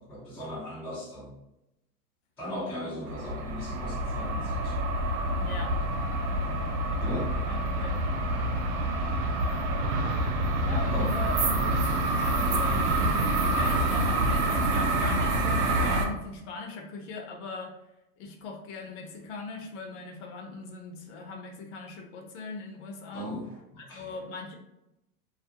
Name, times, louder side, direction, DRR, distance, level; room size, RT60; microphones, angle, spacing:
voice 1, 0.0-1.3 2.4-4.8 6.4-6.6 7.0-7.4 10.9-11.1 23.1-23.5 23.9-24.1, equal, 5° left, -9 dB, 0.3 m, -37 dB
sound 1, 3.1-16.1, right 1 dB, 50° right, 0.5 m, -27 dB
voice 2, 5.4-5.8 7.5-8.0 10.6-11.9 12.2-17.7 18.2-23.3 23.8-24.5, left 3 dB, 50° left, 2 dB, 0.6 m, -40 dB
2.4 x 2.0 x 2.8 m, 0.91 s
hypercardioid pair, 115°, 46 cm